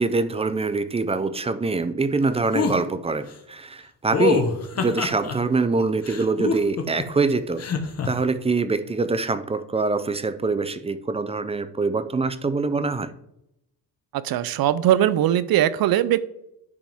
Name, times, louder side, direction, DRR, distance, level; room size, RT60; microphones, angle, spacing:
voice 1, 0.0-7.7 8.1-13.1, right 3 dB, 15° right, 13 dB, 0.4 m, -24 dB
sound 1, 2.5-2.8 4.1-5.3 6.0-7.0 7.6-8.1, left 5 dB, 40° left, 1.1 m, -24 dB
voice 2, 14.1-16.2, right 12 dB, 65° right, 16 dB, 0.6 m, -20 dB
10.5 x 5.0 x 3.6 m, 0.81 s
cardioid pair, 115°, 39 cm